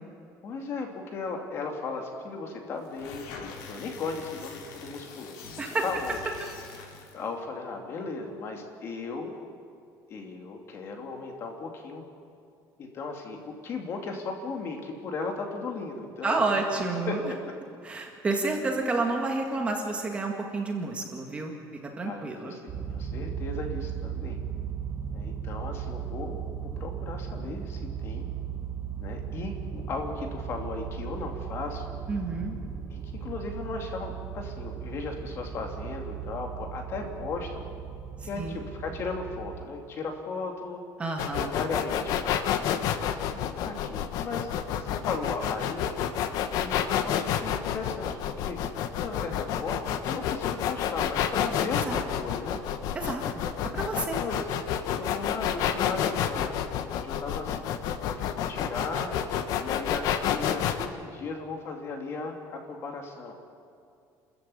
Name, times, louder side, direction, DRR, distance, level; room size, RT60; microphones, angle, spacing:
voice 1, 0.4-3.3 3.7-6.2 7.1-9.3 10.1-12.0 12.8-16.6 17.1-17.2 22.0-24.4 25.1-28.3 29.0-31.8 32.9-37.6 38.2-40.8 41.5-42.4 42.8-44.5 44.8-45.8 46.6-48.1 48.4-48.6 49.0-52.6 54.1-54.4 54.9-56.5 56.9-57.6 58.0-59.1 59.6-63.3, left 4 dB, 35° left, 3 dB, 2.7 m, -36 dB
sound 1, 2.8-7.3, left 5 dB, 90° left, 3.5 m, -44 dB
voice 2, 16.2-17.3 17.8-21.5 21.8-22.5 32.1-32.6 38.2-38.6 41.0-41.6 51.9-52.0 52.9-53.2 53.7-54.2, right 3 dB, 15° right, 2 dB, 1.9 m, -30 dB
sound 2, 22.7-39.7, right 8 dB, 35° right, 3.3 m, -37 dB
sound 3, 41.2-60.9, left 9 dB, 60° left, 1.2 m, -29 dB
29.0 x 14.0 x 8.6 m, 2.4 s
cardioid pair, 175°, 7 cm